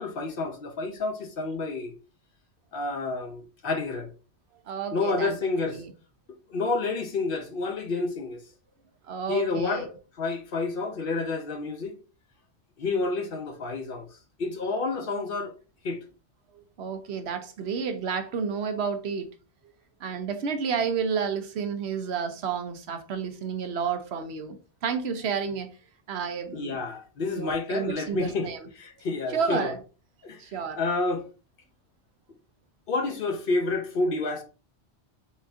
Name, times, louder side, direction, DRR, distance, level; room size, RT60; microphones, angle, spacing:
voice 1, 0.0-1.9 2.7-4.1 4.9-5.8 6.5-8.4 9.3-9.9 10.2-12.0 12.8-15.5 15.8-16.0 26.5-29.7 30.2-30.4 30.8-31.2 32.9-34.4, left 3 dB, 55° left, 0.8 m, -29 dB
voice 2, 4.7-5.3 5.6-5.8 9.1-9.9 16.5-19.3 20.0-25.7 26.1-26.8 27.3-28.6 29.3-29.8 30.4-30.8, right 6 dB, 70° right, 0.9 m, -31 dB
4.2 x 3.5 x 2.5 m
omnidirectional pair, 1.2 m